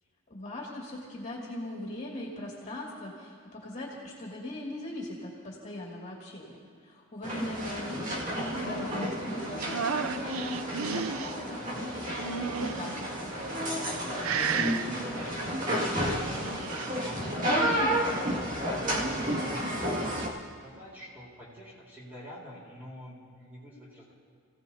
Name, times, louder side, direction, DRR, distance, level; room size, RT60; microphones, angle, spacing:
voice 1, 0.3-6.6 6.8-13.3, left 1 dB, 30° left, -4 dB, 2.5 m, -40 dB
sound 1, 7.2-20.3, equal, 35° right, 2.2 m, -31 dB
sound 2, 9.6-11.3 12.2-13.0 13.6-14.0 14.2-14.8 16.2-16.9, right 6 dB, 80° right, 0.5 m, -33 dB
voice 2, 11.5-11.8 13.9-18.5 18.8-20.1 20.5-24.1, equal, 10° right, -6 dB, 4.1 m, -48 dB
30.0 x 17.0 x 2.8 m, 2.2 s
head